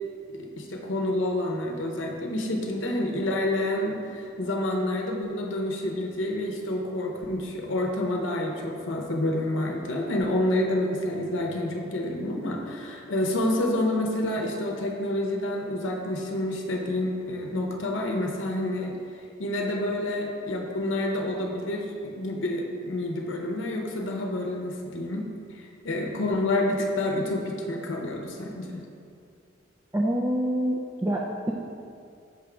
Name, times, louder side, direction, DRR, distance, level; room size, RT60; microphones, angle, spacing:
voice 1, 0.3-18.9 19.4-25.3 25.5-28.8, left 1 dB, 70° left, 1 dB, 0.7 m, -28 dB
voice 2, 29.9-31.5, right 1 dB, 15° right, -3 dB, 0.3 m, -26 dB
6.2 x 3.4 x 4.9 m, 2.4 s
head